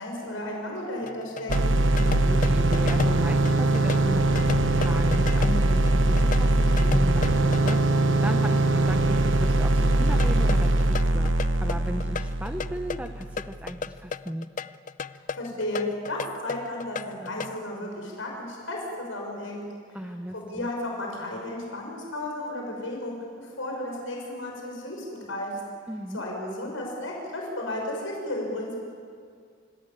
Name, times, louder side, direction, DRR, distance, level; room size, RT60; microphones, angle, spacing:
voice 1, 0.0-1.5 15.3-19.6 20.3-25.5 26.1-28.8, left 1 dB, 85° left, -1 dB, 6.3 m, -33 dB
sound 1, 1.1-7.8 10.2-17.6, left 4 dB, 40° left, 0.5 m, -33 dB
sound 2, 1.5-13.3, right 2 dB, 75° right, 1.1 m, -22 dB
voice 2, 2.0-14.5 19.9-20.7 25.9-26.2, equal, 10° right, 6 dB, 0.8 m, -36 dB
sound 3, 2.3-8.0, equal, 55° left, 4.2 m, -40 dB
29.0 x 16.5 x 8.9 m, 2.2 s
head